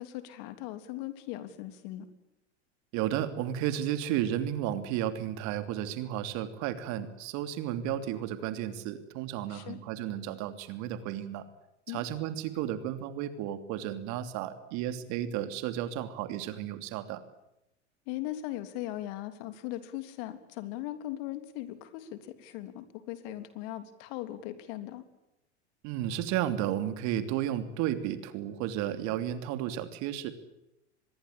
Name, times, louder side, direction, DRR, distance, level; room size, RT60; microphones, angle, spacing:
voice 1, 0.0-2.1 9.5-9.8 11.9-12.1 18.1-25.0, left 14 dB, 60° left, 10 dB, 3.4 m, -39 dB
voice 2, 2.9-11.4 11.9-17.2 25.8-30.3, right 11 dB, 55° right, 10 dB, 3.0 m, -33 dB
25.0 x 21.5 x 8.4 m, 0.91 s
hypercardioid pair, 85°, 35 cm